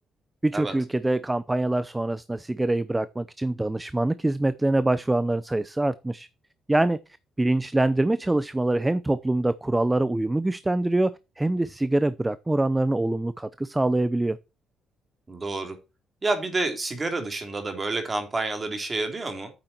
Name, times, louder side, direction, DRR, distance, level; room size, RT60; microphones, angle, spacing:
voice 1, 0.4-6.3 6.7-7.0 7.4-14.4, right 2 dB, 15° right, 0.7 m, -24 dB
voice 2, 15.3-15.8 16.2-19.5, right 2 dB, 30° right, 3.4 m, -29 dB
9.2 x 7.5 x 4.4 m
cardioid pair, 90°, 0 cm